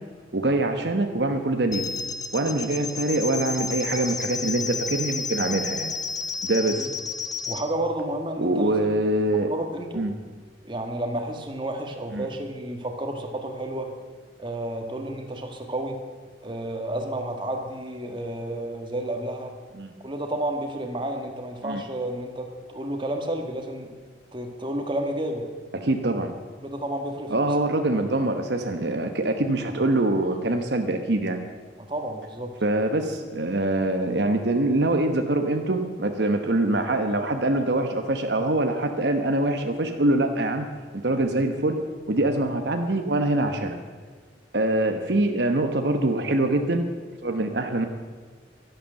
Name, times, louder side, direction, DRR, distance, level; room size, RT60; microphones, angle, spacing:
voice 1, 0.3-1.8 2.3-5.9 6.4-6.9 8.4-9.5 9.9-10.1 12.1-12.3 19.8-19.9 21.6-21.8 25.7-26.3 27.3-31.4 32.6-40.7 41.0-41.8 42.1-43.8 44.5-46.9 47.2-47.9, right 2 dB, 65° right, 5 dB, 1.1 m, -24 dB
sound 1, 1.7-7.6, left 4 dB, 20° left, 0.8 m, -31 dB
voice 2, 7.5-9.0 9.5-10.0 10.6-13.9 14.4-16.0 16.4-19.5 20.0-23.9 24.3-25.5 26.6-27.5 31.8-32.5, right 1 dB, 25° right, 4 dB, 1.7 m, -31 dB
12.0 x 11.5 x 7.6 m, 1.5 s
head